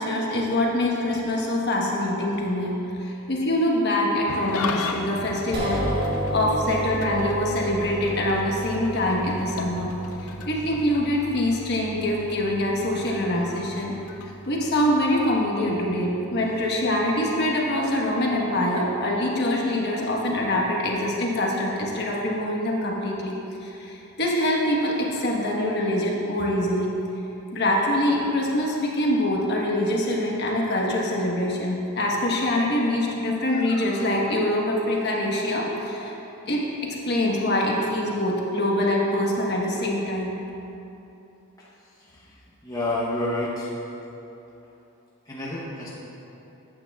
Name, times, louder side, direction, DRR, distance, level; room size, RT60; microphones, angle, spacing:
voice 1, 0.0-5.8 6.3-9.9 10.5-13.9 14.5-26.9 27.5-36.1 36.5-40.4, left 1 dB, 50° left, -2 dB, 1.3 m, -24 dB
Engine starting / Idling, 4.3-14.9, left 3 dB, 75° left, 0.6 m, -37 dB
sound 1, 5.5-17.8, right 1 dB, 50° right, 1.3 m, -35 dB
voice 2, 41.6-43.7 45.3-45.9, left 1 dB, 15° left, -6 dB, 0.9 m, -30 dB
14.0 x 8.7 x 2.4 m, 3.0 s
head